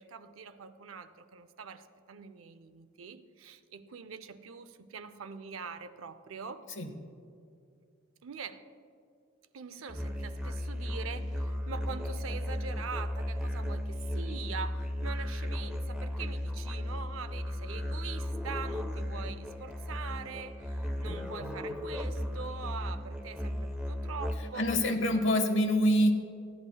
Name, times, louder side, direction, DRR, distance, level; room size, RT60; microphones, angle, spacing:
voice 1, 0.0-6.7 8.2-8.6 9.5-24.8, right 5 dB, 80° right, 11 dB, 0.5 m, -43 dB
Musical instrument, 9.9-24.6, left 1 dB, 5° right, 0.6 m, -35 dB
voice 2, 21.4-21.8 24.5-26.1, equal, 65° left, 7 dB, 0.9 m, -27 dB
15.5 x 11.0 x 2.3 m, 2.4 s
head